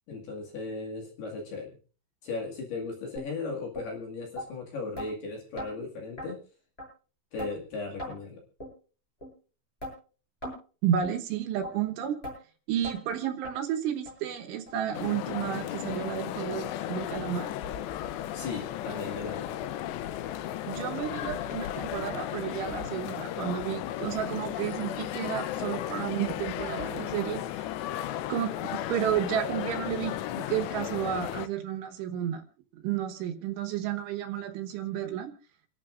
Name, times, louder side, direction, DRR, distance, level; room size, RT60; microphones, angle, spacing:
voice 1, 0.1-1.7 2.2-6.4 7.3-8.4 18.3-19.6, left 3 dB, 60° left, 0 dB, 3.9 m, -36 dB
sound 1, 3.1-3.3 3.7-3.9 4.4-4.5 5.0-5.1 5.6-5.7 6.2-6.3 6.8-6.9 7.4-7.5 8.0-8.1 8.6-8.7 9.2-9.3 9.8-9.9 10.4-10.6 11.0-11.2 11.6-11.7 12.2-12.4 12.8-13.0 13.4-13.6 14.0-14.1 14.7-14.8 15.3-15.4 15.9-16.0, equal, 10° left, 8.0 m, -38 dB
voice 2, 10.8-12.2 12.7-17.5 20.7-27.7 28.3-32.4 32.8-35.3, right 10 dB, 80° right, 5 dB, 3.7 m, -32 dB
sound 2, 14.9-31.5, left 12 dB, 80° left, 2.7 m, -35 dB
29.0 x 11.5 x 2.5 m, 0.37 s
omnidirectional pair, 5.5 m